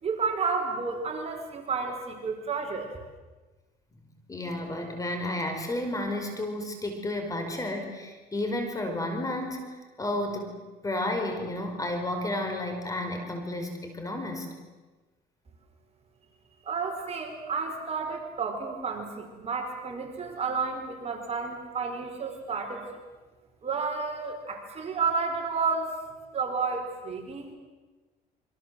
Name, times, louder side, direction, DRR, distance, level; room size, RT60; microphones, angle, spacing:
voice 1, 0.0-2.9 16.6-22.8 23.6-25.9 26.3-27.5, right 5 dB, 40° right, 3 dB, 4.9 m, -31 dB
voice 2, 4.3-10.5 10.8-14.5, left 1 dB, 20° left, 5 dB, 5.2 m, -32 dB
28.0 x 24.5 x 7.8 m, 1.2 s
cardioid pair, 110°, 17 cm